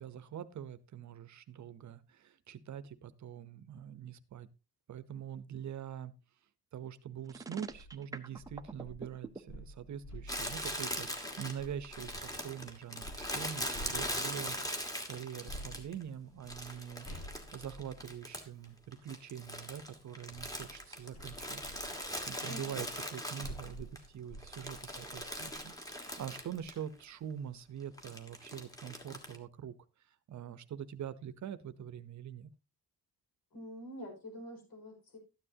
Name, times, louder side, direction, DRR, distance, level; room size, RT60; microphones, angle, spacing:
voice 1, 0.0-4.5 4.9-6.1 6.7-17.1 17.5-29.7 30.3-32.5, right 9 dB, 50° right, 14 dB, 0.8 m, -44 dB
sound 1, 7.2-9.4, right 3 dB, 10° right, 0.5 m, -44 dB
sound 2, 7.7-7.9 8.4-12.4 13.0-14.6 15.5-18.8 19.8-25.7 26.1-26.2 26.5-26.7, equal, 45° left, 7.4 m, -50 dB
Crumpling crinkling, 10.3-16.0 16.5-18.6 18.9-24.0 24.3-26.8 27.0-27.1 28.0-29.4, equal, 10° left, 1.4 m, -41 dB
voice 2, 22.5-22.9 33.5-35.2, equal, 70° left, 2 dB, 5.2 m, -46 dB
13.0 x 10.0 x 2.8 m, 0.29 s
wide cardioid pair, 175°, 38 cm